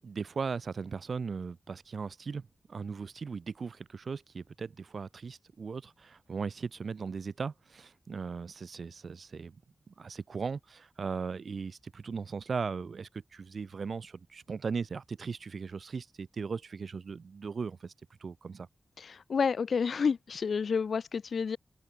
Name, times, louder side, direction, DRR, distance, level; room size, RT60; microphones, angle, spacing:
voice 1, 0.0-9.6 9.9-17.9 18.2-18.7, right 5 dB, 75° right, 5.0 m, -38 dB
voice 2, 19.0-21.6, left 5 dB, 80° left, 4.0 m, -29 dB
open air
cardioid pair, 45°, 0 cm